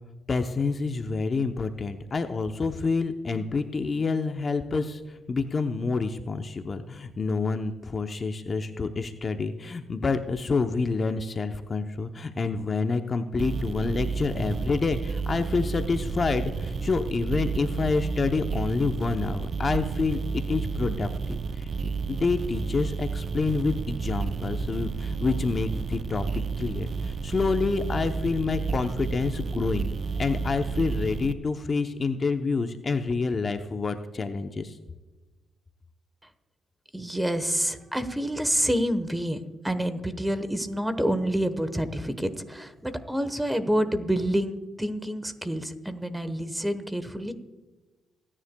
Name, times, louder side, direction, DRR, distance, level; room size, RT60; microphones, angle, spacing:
voice 1, 0.3-5.0 5.3-21.7 22.1-26.2 26.6-29.9 30.2-34.8, left 4 dB, 35° left, 7 dB, 0.7 m, -28 dB
sound 1, 13.4-31.3, right 5 dB, 45° right, 0.4 m, -31 dB
voice 2, 36.9-39.4 39.6-47.3, equal, 5° right, 11 dB, 1.1 m, -28 dB
27.5 x 9.9 x 2.3 m, 1.2 s
cardioid pair, 90°, 0 cm